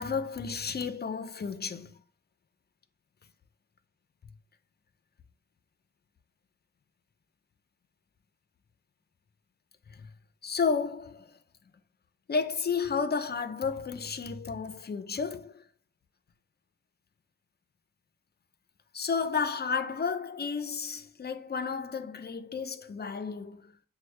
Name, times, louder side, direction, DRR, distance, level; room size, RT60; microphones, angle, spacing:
voice 1, 0.0-1.9 10.0-10.1 10.4-11.3 12.3-15.6 18.9-23.7, left 5 dB, 30° left, 0.4 m, -32 dB
6.0 x 2.1 x 3.1 m
wide cardioid pair, 120°, 33 cm